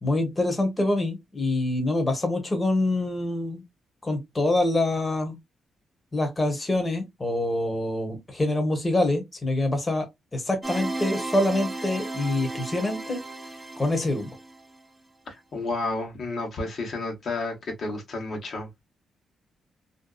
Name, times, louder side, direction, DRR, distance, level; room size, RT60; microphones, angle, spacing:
voice 1, 0.0-3.6 4.0-5.4 6.1-13.2 13.8-14.3, left 2 dB, 20° left, 1.0 m, -25 dB
sound 1, 10.6-14.8, right 2 dB, 10° right, 0.5 m, -34 dB
voice 2, 15.3-18.8, left 2 dB, 60° left, 1.1 m, -31 dB
2.6 x 2.3 x 2.3 m
cardioid pair, 85°, 0 cm